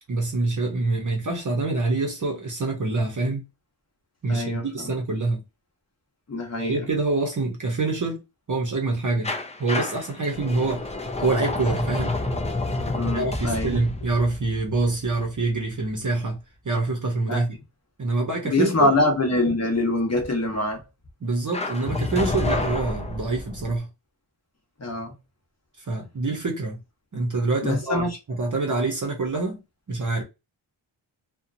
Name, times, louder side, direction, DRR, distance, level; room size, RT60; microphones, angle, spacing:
voice 1, 0.1-3.5 4.2-5.4 6.6-8.2 8.5-9.3 9.6-10.9 11.2-12.2 13.1-17.5 18.0-18.9 21.2-23.9 25.9-26.8 27.1-29.6 29.9-30.2, right 3 dB, 40° right, 0.8 m, -26 dB
voice 2, 4.3-4.9 6.3-6.9 12.9-13.8 17.3-17.4 18.4-20.8 24.8-25.1 27.6-28.2, left 2 dB, 30° left, 0.9 m, -24 dB
sound 1, 9.2-16.0 21.5-23.8, left 2 dB, 15° left, 0.3 m, -29 dB
2.8 x 2.3 x 2.5 m
wide cardioid pair, 140°, 49 cm